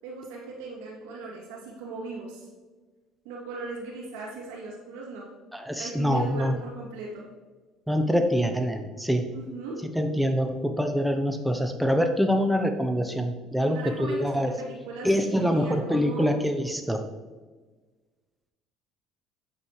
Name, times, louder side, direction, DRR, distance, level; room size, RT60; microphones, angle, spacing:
voice 1, 0.0-2.5 3.2-5.2 5.8-7.2 9.3-9.8 13.6-16.2, right 3 dB, 85° right, -2 dB, 2.8 m, -38 dB
voice 2, 5.5-6.6 7.9-9.3 9.9-14.6 15.0-17.0, equal, ahead, 6 dB, 0.9 m, -25 dB
8.8 x 7.8 x 3.3 m, 1.3 s
supercardioid pair, 85°, 0 cm